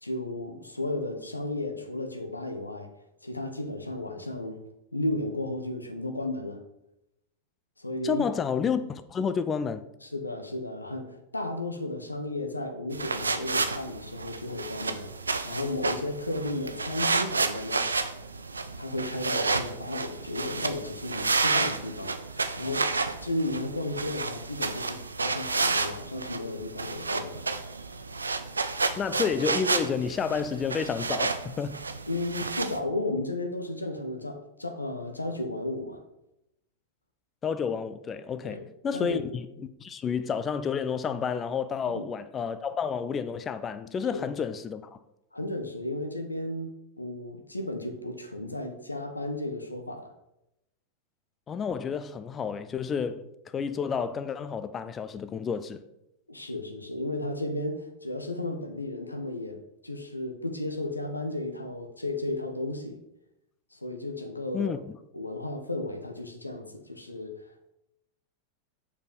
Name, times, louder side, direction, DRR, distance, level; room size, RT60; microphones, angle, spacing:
voice 1, 0.0-2.9 3.2-4.6 4.9-6.6 7.8-8.3 10.0-17.9 18.8-27.5 32.1-36.0 38.4-38.7 38.9-39.2 41.9-42.0 44.1-44.3 45.3-46.7 47.0-50.1 56.3-63.0 63.7-64.7 65.1-67.5, left 2 dB, 85° left, 0.8 m, -34 dB
voice 2, 8.0-9.8 29.0-31.8 37.4-44.9 51.5-55.8 64.5-65.0, left 6 dB, 25° left, 0.4 m, -30 dB
sound 1, 12.9-32.8, right 3 dB, 75° right, 0.5 m, -31 dB
6.7 x 4.8 x 5.3 m
figure-of-eight pair, 90°, 0 cm